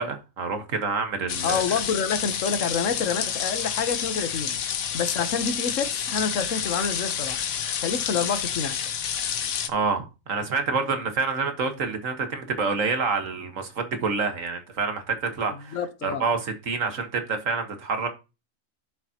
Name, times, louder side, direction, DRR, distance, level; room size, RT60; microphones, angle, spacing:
voice 1, 0.0-1.6 9.7-18.1, right 4 dB, 70° right, 1.8 m, -27 dB
sound 1, 1.3-9.7, left 8 dB, 85° left, 1.3 m, -29 dB
voice 2, 1.4-4.6 4.9-7.4 7.8-8.8 15.7-16.2, left 6 dB, 70° left, 1.4 m, -27 dB
11.5 x 7.0 x 2.9 m
omnidirectional pair, 1.4 m